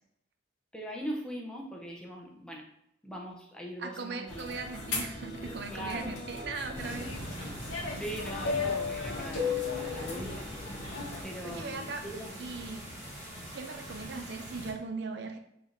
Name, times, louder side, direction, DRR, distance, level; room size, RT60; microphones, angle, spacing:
voice 1, 0.7-2.7 3.0-4.6 5.7-6.2 7.9-10.5 11.2-12.5, equal, 5° left, -1 dB, 0.6 m, -41 dB
voice 2, 3.8-7.1 11.4-12.0 12.4-12.8 13.5-15.4, right 4 dB, 60° right, 6 dB, 0.4 m, -39 dB
sound 1, 4.3-11.2, left 4 dB, 85° left, 1.1 m, -36 dB
sound 2, 6.7-14.7, equal, 20° right, 1.4 m, -43 dB
5.9 x 3.4 x 2.6 m, 0.77 s
head